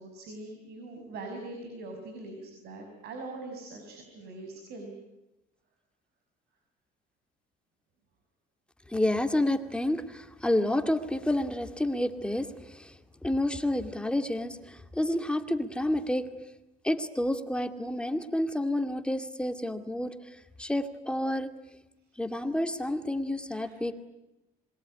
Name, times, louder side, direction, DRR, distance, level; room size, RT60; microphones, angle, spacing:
voice 1, 0.0-4.9 23.6-23.8, right 2 dB, 70° right, 4 dB, 5.9 m, -42 dB
voice 2, 8.9-16.3 16.8-21.5 22.2-23.9, left 1 dB, 5° left, 8 dB, 2.2 m, -29 dB
27.0 x 22.0 x 9.9 m, 0.95 s
cardioid pair, 110°, 17 cm